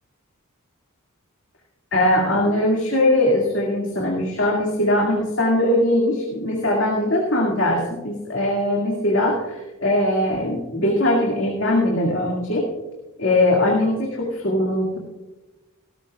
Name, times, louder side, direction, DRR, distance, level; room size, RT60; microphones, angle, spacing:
voice 1, 1.9-12.7 13.2-15.0, left 1 dB, 60° left, -2 dB, 2.3 m, -21 dB
18.0 x 14.0 x 2.4 m, 1.1 s
head